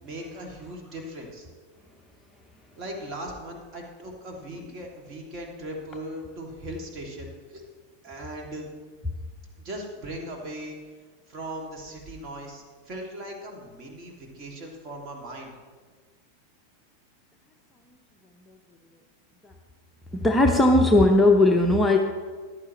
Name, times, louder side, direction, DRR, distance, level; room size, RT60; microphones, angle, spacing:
voice 1, 0.0-1.5 2.8-7.6 8.0-8.7 9.6-10.8 11.3-15.5, right 1 dB, 35° right, 0 dB, 2.3 m, -38 dB
voice 2, 20.1-22.0, left 2 dB, 5° left, 1 dB, 0.8 m, -18 dB
14.5 x 11.0 x 3.1 m, 1.5 s
figure-of-eight pair, 90°, 0 cm